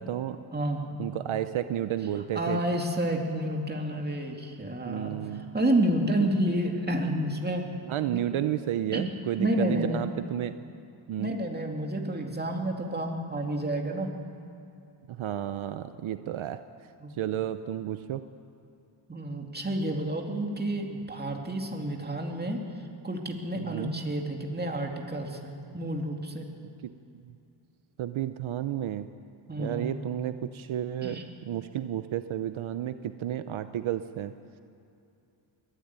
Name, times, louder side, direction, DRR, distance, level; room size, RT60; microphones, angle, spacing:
voice 1, 0.0-0.4 1.0-2.6 4.8-5.4 6.2-6.3 7.9-10.5 11.1-11.3 15.1-16.6 17.1-18.2 23.6-23.9 27.3-27.4 28.0-29.1 29.6-31.2 31.5-34.3, right 11 dB, 75° right, 11 dB, 0.8 m, -32 dB
voice 2, 0.5-1.0 2.3-7.7 8.1-8.2 8.9-9.0 9.4-10.1 11.2-14.1 17.0-17.1 19.1-22.6 23.0-26.5 29.5-29.9 31.0-31.3, right 1 dB, 20° right, 2 dB, 2.6 m, -30 dB
22.0 x 13.0 x 9.6 m, 2.6 s
cardioid pair, 100°, 49 cm